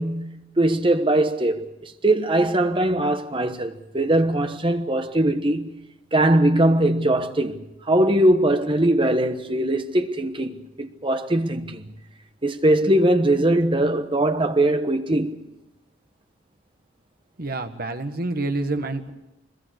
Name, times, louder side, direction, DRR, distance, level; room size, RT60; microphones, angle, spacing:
voice 1, 0.0-5.8 6.1-11.8 12.4-15.3, right 1 dB, 25° right, 1.2 m, -21 dB
voice 2, 17.4-19.1, right 2 dB, 50° right, 1.6 m, -27 dB
23.5 x 22.0 x 6.5 m
head